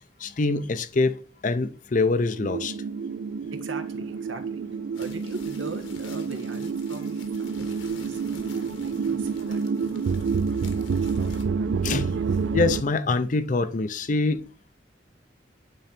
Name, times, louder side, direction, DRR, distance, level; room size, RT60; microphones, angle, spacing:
voice 1, 0.2-2.8 11.8-12.2 12.5-14.4, left 3 dB, 40° left, 0.5 m, -25 dB
sound 1, 2.4-12.8, right 5 dB, 65° right, 0.4 m, -28 dB
voice 2, 3.5-8.2 8.8-9.6 9.9-10.5 10.7-11.8, right 2 dB, 80° right, 1.3 m, -41 dB
sound 2, 4.9-11.4, left 4 dB, 80° left, 1.4 m, -48 dB
9.0 x 3.9 x 4.3 m
head